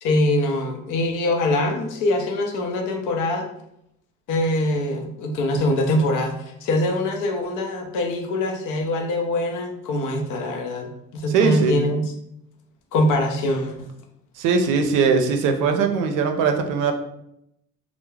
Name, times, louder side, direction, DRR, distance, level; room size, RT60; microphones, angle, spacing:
voice 1, 0.0-3.5 4.3-6.3 6.6-12.1 12.9-13.9, left 1 dB, 90° left, 3 dB, 0.6 m, -23 dB
voice 2, 11.3-11.7 14.4-16.9, right 5 dB, 90° right, 6 dB, 0.4 m, -20 dB
2.3 x 2.0 x 3.1 m, 0.78 s
cardioid pair, 90°, 30 cm